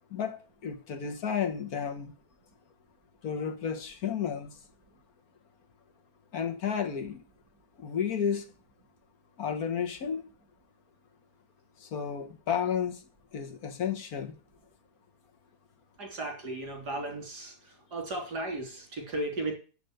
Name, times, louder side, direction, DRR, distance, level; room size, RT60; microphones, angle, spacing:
voice 1, 0.1-2.1 3.2-4.6 6.3-7.2 7.8-8.5 9.4-10.2 11.8-13.0 13.3-14.4, left 7 dB, 65° left, 1.7 m, -32 dB
voice 2, 16.0-19.5, right 2 dB, 85° right, 3.9 m, -35 dB
8.0 x 6.9 x 7.8 m
omnidirectional pair, 1.7 m